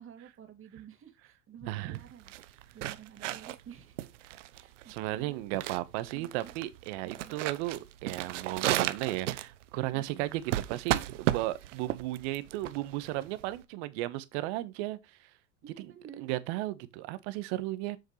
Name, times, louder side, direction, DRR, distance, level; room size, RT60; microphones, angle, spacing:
voice 1, 0.0-4.1 4.5-5.4 6.1-6.5 7.0-7.4 9.9-10.3 15.6-16.3, right 8 dB, 35° right, 2.5 m, -51 dB
voice 2, 1.7-2.0 4.9-15.3 15.8-18.0, right 16 dB, 70° right, 1.3 m, -35 dB
sound 1, 1.9-13.6, right 14 dB, 85° right, 0.9 m, -34 dB
8.0 x 6.5 x 3.2 m
hypercardioid pair, 95°, 36 cm